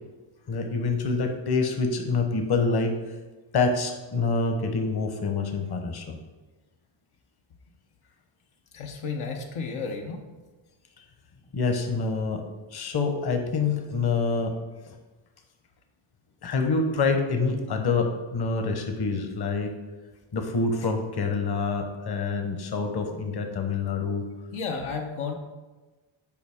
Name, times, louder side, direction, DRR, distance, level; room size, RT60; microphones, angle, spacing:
voice 1, 0.5-3.0 3.5-6.2 11.5-12.4 12.7-14.5 14.9-15.0 16.4-19.7 20.3-24.2, left 4 dB, 55° left, 5 dB, 1.0 m, -26 dB
voice 2, 8.7-10.2 11.0-11.1 24.5-25.3, left 5 dB, 90° left, 2 dB, 0.8 m, -32 dB
7.0 x 4.8 x 3.6 m, 1.2 s
cardioid pair, 80°, 48 cm